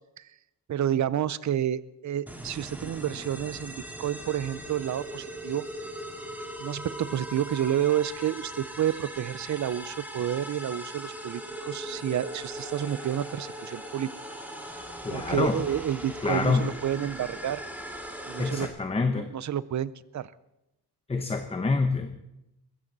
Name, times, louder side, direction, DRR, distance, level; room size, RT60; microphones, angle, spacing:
voice 1, 0.7-5.6 6.6-14.1 15.1-17.6 18.3-18.7 19.1-20.3, right 10 dB, 45° right, 18 dB, 0.6 m, -30 dB
sound 1, 2.3-18.7, equal, 5° right, 2.3 m, -39 dB
voice 2, 15.0-15.5 16.2-16.6 18.4-19.3 21.1-22.2, left 4 dB, 15° left, 7 dB, 0.8 m, -26 dB
22.0 x 15.0 x 4.0 m, 0.90 s
cardioid pair, 145°, 41 cm